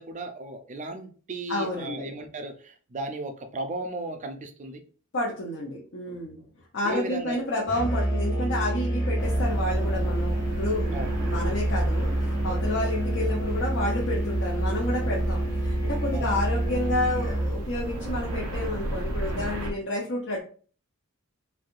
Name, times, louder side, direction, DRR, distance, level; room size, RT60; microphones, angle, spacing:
voice 1, 0.0-4.8 6.8-7.4 10.9-11.1 16.1-16.3, right 2 dB, 35° right, 7 dB, 0.4 m, -35 dB
voice 2, 1.5-2.1 5.1-6.4 6.7-20.4, left 1 dB, 55° left, -4 dB, 0.7 m, -30 dB
Musical instrument, 7.7-17.6, right 1 dB, 15° left, 0.7 m, -27 dB
sound 1, 9.2-19.7, right 1 dB, 80° right, 0.7 m, -33 dB
3.2 x 2.7 x 2.5 m, 0.41 s
head